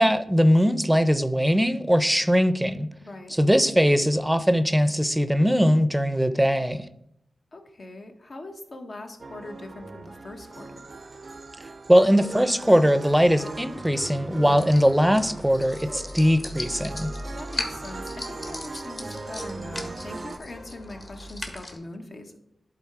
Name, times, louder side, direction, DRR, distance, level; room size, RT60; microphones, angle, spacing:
voice 1, 0.0-2.9 3.4-6.8 11.9-17.1, equal, 5° right, 12 dB, 0.6 m, -20 dB
voice 2, 3.0-3.3 7.5-10.8 17.3-22.4, left 2 dB, 60° left, 4 dB, 1.2 m, -41 dB
sound 1, 9.2-20.4, right 3 dB, 55° right, 0.5 m, -40 dB
sound 2, 13.0-21.8, left 1 dB, 40° left, 1.5 m, -38 dB
10.5 x 3.9 x 4.7 m, 0.77 s
cardioid pair, 45°, 0 cm